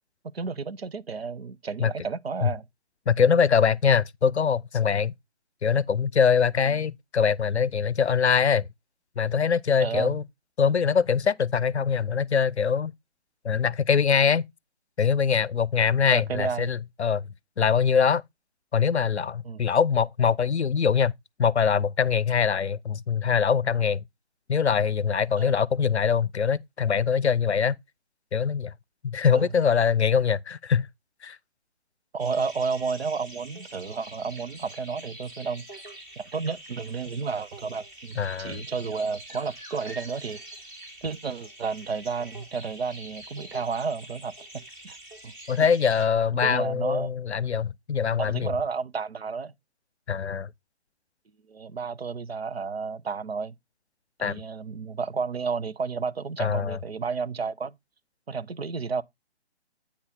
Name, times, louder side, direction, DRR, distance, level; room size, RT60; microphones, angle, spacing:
voice 1, 0.3-2.7 6.7-6.8 9.8-10.2 16.1-16.7 19.4-19.6 25.4-25.5 29.3-29.5 32.1-35.8 36.2-40.4 41.0-45.0 45.2-45.3 46.4-47.1 48.2-49.5 51.5-53.5 54.2-57.8 58.3-59.0, right 5 dB, 65° right, 0.6 m, -31 dB
voice 2, 3.1-5.1 5.6-8.7 9.2-10.2 10.6-12.9 13.4-14.4 15.0-17.3 17.6-18.2 18.7-21.1 21.4-24.0 24.5-27.8 28.3-28.7 29.0-30.9 31.2-31.4 38.2-38.6 45.5-48.5 50.1-50.5 54.2-54.4 56.4-56.8, left 6 dB, 80° left, 0.5 m, -23 dB
sound 1, 32.2-46.1, right 1 dB, 20° right, 1.7 m, -45 dB
8.6 x 5.5 x 3.9 m
figure-of-eight pair, 145°, 33 cm